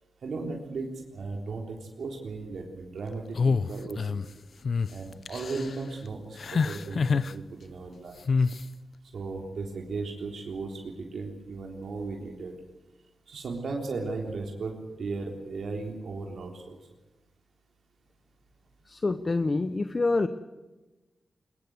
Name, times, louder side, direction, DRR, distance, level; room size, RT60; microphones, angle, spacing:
voice 1, 0.2-4.3 4.9-8.2 9.1-12.5 13.3-16.8, right 3 dB, 75° right, 1 dB, 3.6 m, -36 dB
sound 1, 3.3-4.3 4.6-4.9 5.3-5.7 6.4-7.3 8.3-8.6, left 5 dB, 60° left, 0.8 m, -26 dB
voice 2, 18.9-20.3, left 3 dB, 35° left, 10 dB, 0.9 m, -26 dB
22.5 x 22.0 x 8.0 m, 1.1 s
wide cardioid pair, 105°, 0 cm